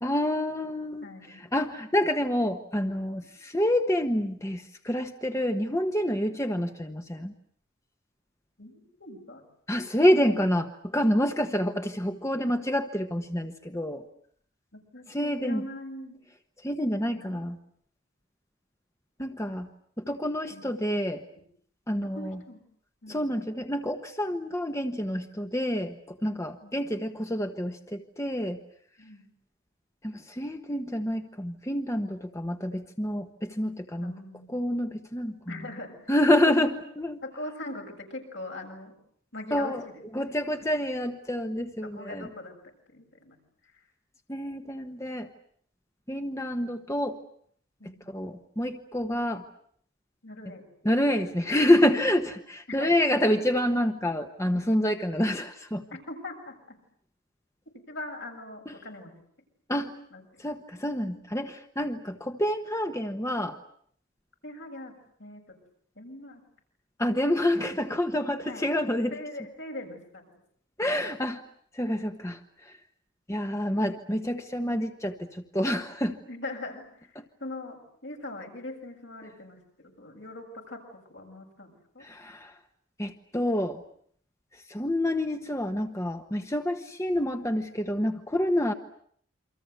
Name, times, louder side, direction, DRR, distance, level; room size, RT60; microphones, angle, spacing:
voice 1, 0.0-7.3 9.7-14.0 15.1-15.6 16.6-17.6 19.2-19.7 20.0-21.2 21.9-22.4 23.1-28.6 30.0-34.1 34.5-35.6 36.1-37.2 39.5-39.8 40.1-42.3 44.3-45.3 46.1-47.2 48.1-49.4 50.8-55.8 58.7-58.8 59.7-59.9 60.4-63.6 67.0-69.2 70.8-71.4 71.7-72.4 72.7-72.8 73.3-76.2 77.2-77.3 82.0-82.5 83.0-83.8 84.7-88.7, left 1 dB, 15° left, 6 dB, 1.3 m, -28 dB
voice 2, 1.0-1.5 8.6-9.4 14.7-16.2 16.8-17.4 20.5-20.7 21.9-22.6 23.0-23.3 26.6-26.7 29.0-29.2 34.0-34.6 35.5-36.1 37.2-38.9 39.3-40.0 41.8-42.6 42.9-43.4 43.7-43.8 47.8-48.2 50.2-50.6 52.7-53.0 55.9-56.5 57.9-59.1 60.1-60.4 61.8-61.9 64.4-64.9 65.2-65.6 66.0-66.4 68.5-68.7 69.1-70.2 76.3-82.1, left 2 dB, 70° left, 2 dB, 7.4 m, -41 dB
29.0 x 25.0 x 8.1 m, 0.63 s
head